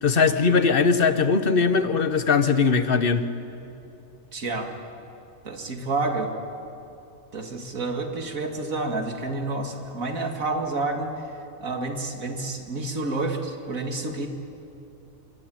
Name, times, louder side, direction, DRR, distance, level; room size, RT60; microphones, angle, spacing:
voice 1, 0.0-3.2, left 5 dB, 45° left, 10 dB, 1.3 m, -20 dB
voice 2, 4.3-4.7 5.4-6.3 7.3-14.3, right 3 dB, 85° right, 4 dB, 2.7 m, -29 dB
25.5 x 22.5 x 9.2 m, 2.9 s
omnidirectional pair, 1.4 m